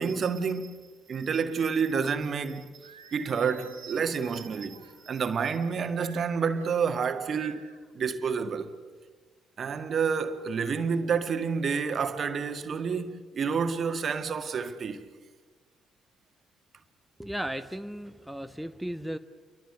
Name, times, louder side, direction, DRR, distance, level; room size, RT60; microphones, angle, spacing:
voice 1, 0.0-2.7 3.1-7.6 7.9-8.7 9.6-15.0, right 6 dB, 45° right, 1.7 m, -29 dB
Singing, 2.8-5.0 6.0-6.8 7.3-7.8, right 6 dB, 80° right, 2.3 m, -52 dB
voice 2, 17.2-19.2, equal, ahead, 1.1 m, -35 dB
29.5 x 23.5 x 6.9 m
figure-of-eight pair, 45°, 0 cm